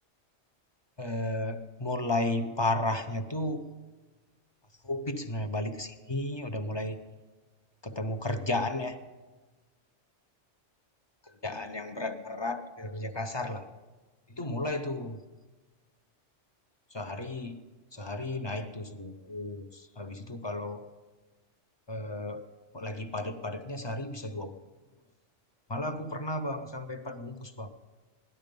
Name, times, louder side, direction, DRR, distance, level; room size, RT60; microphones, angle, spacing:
voice 1, 1.0-3.7 4.8-7.0 7.8-9.0 11.3-13.7 14.3-15.2 16.9-17.6 17.9-20.9 21.9-24.7 25.7-27.7, left 2 dB, 30° left, 8 dB, 0.6 m, -34 dB
17.5 x 12.0 x 5.2 m, 1.3 s
omnidirectional pair, 1.2 m